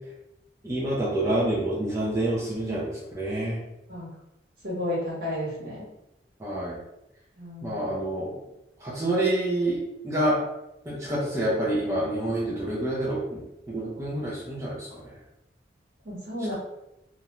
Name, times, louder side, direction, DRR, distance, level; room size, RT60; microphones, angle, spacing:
voice 1, 0.6-3.6 6.4-6.8 7.6-8.3 8.8-9.8 10.0-10.4 10.9-13.4 13.7-15.0, right 1 dB, 20° right, -7 dB, 0.5 m, -27 dB
voice 2, 4.6-5.8 7.4-7.9 16.0-16.5, left 1 dB, 60° right, -6 dB, 1.1 m, -32 dB
2.5 x 2.1 x 2.9 m, 0.89 s
head